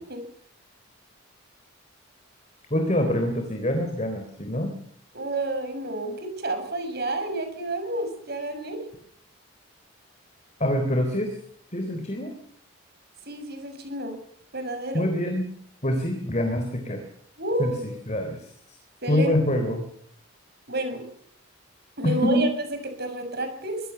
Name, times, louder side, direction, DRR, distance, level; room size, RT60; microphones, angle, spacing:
voice 1, 2.7-4.7 10.6-11.3 11.7-12.3 14.9-15.5 15.8-17.0 17.6-18.4 19.1-19.8 22.0-22.5, left 1 dB, 30° left, 5 dB, 3.6 m, -25 dB
voice 2, 5.1-8.8 13.3-14.1 14.5-15.1 17.4-17.9 19.0-19.3 20.7-21.1 22.0-22.5 23.0-23.8, right 1 dB, 50° right, 6 dB, 7.0 m, -30 dB
25.0 x 20.0 x 7.0 m, 0.63 s
head